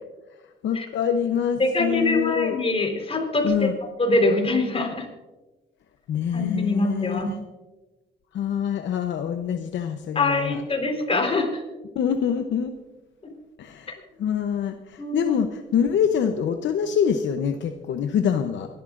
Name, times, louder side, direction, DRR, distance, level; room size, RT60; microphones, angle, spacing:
voice 1, 0.6-2.6 3.4-3.8 6.1-7.2 8.3-10.6 12.0-12.7 13.6-13.9 14.2-18.7, left 8 dB, 70° left, 6 dB, 0.8 m, -25 dB
voice 2, 1.6-5.1 6.3-7.3 10.1-11.6 15.0-15.3, left 2 dB, 30° left, 2 dB, 4.0 m, -24 dB
26.5 x 12.5 x 2.5 m, 1.2 s
cardioid pair, 90°, 20 cm